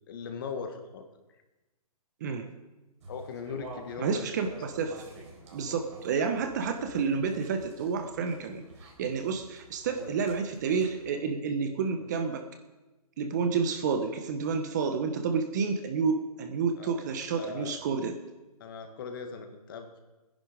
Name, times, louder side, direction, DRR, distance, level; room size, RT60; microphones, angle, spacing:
voice 1, 0.1-1.0 3.1-4.3 9.9-10.1 16.8-17.0 17.4-17.7 18.6-20.0, left 5 dB, 35° left, 6 dB, 1.7 m, -39 dB
sound 1, 3.0-11.1, right 2 dB, 50° right, 4.4 m, -49 dB
voice 2, 4.0-5.1 5.5-8.6 9.0-12.4 13.2-18.2, right 5 dB, 30° right, 7 dB, 1.0 m, -30 dB
19.0 x 10.5 x 5.1 m, 1.1 s
hypercardioid pair, 165°, 19 cm